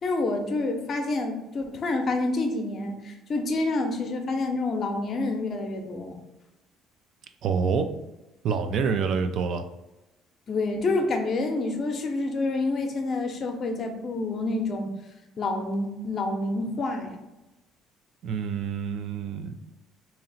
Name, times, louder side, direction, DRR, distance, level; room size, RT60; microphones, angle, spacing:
voice 1, 0.0-6.2 10.5-14.9 15.4-17.2, left 2 dB, 40° left, 4 dB, 0.6 m, -28 dB
voice 2, 7.4-7.9 8.4-9.6 18.2-19.6, right 5 dB, 60° right, 8 dB, 0.3 m, -27 dB
2.9 x 2.8 x 4.1 m, 1.0 s
cardioid pair, 130°, 0 cm